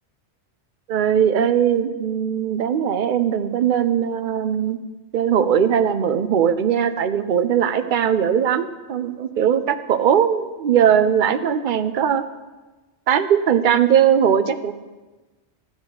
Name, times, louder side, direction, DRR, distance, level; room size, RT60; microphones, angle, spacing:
voice 1, 0.9-4.8 5.1-12.2 13.1-14.7, right 8 dB, 55° right, 11 dB, 0.7 m, -19 dB
13.0 x 4.8 x 7.8 m, 1.2 s
omnidirectional pair, 1.2 m